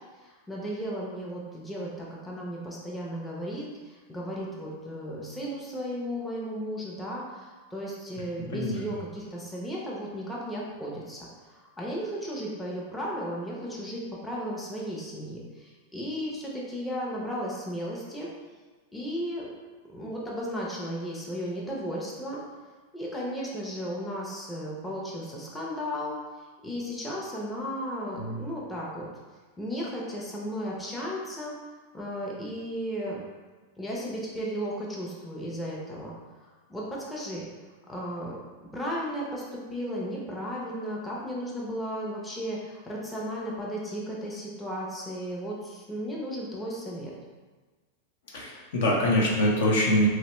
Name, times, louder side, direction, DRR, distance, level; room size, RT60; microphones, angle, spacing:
voice 1, 0.2-11.2 11.5-18.3 18.9-19.5 19.9-22.4 22.9-26.2 26.6-29.1 29.6-31.5 31.9-33.2 33.8-36.1 36.7-37.5 37.9-38.3 38.7-39.4 39.7-47.1, equal, 10° left, -5 dB, 0.5 m, -35 dB
voice 2, 8.5-8.9 28.2-28.5 48.3-50.1, left 1 dB, 70° left, -3 dB, 0.7 m, -24 dB
2.9 x 2.1 x 2.9 m, 1.4 s
supercardioid pair, 135°, 0 cm